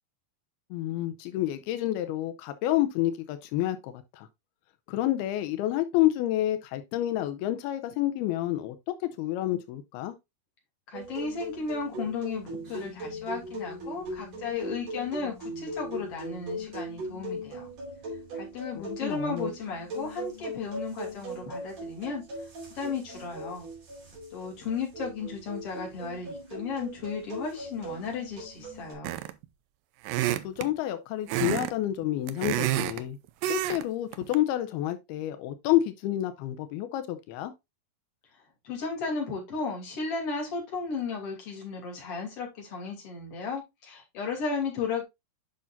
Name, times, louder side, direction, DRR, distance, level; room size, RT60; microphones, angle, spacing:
voice 1, 0.7-4.3 4.9-10.2 18.8-19.5 30.4-33.2 33.4-37.5, left 14 dB, 90° left, 2.6 m, -29 dB
voice 2, 10.9-17.7 18.3-22.2 22.8-23.7 24.3-29.2 38.6-45.0, left 4 dB, 40° left, 3.4 m, -34 dB
sound 1, 10.9-28.9, equal, 45° right, 3.7 m, -39 dB
sound 2, 29.0-29.5 30.0-30.7 31.3-31.7 32.0-33.0 33.4-33.8 34.1-34.4, right 14 dB, 80° right, 2.1 m, -28 dB
8.6 x 5.8 x 2.5 m
omnidirectional pair, 4.5 m